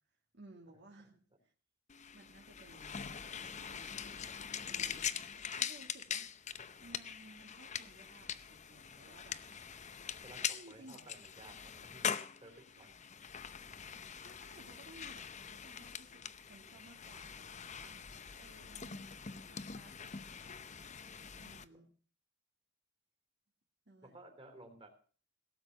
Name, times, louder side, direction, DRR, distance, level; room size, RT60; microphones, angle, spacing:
voice 1, 0.0-1.5 2.1-4.2 4.6-6.3 6.8-9.4 10.5-11.1 12.5-12.9 14.2-18.0 18.4-20.6 21.4-21.9 23.9-24.2, right 2 dB, 55° right, 1 dB, 1.9 m, -59 dB
sound 1, 1.9-21.6, left 7 dB, 35° left, 0.7 m, -43 dB
voice 2, 10.2-12.1 12.4-13.0 21.7-21.8 24.1-25.0, right 2 dB, 25° right, 5 dB, 3.4 m, -56 dB
17.0 x 8.1 x 7.9 m, 0.42 s
head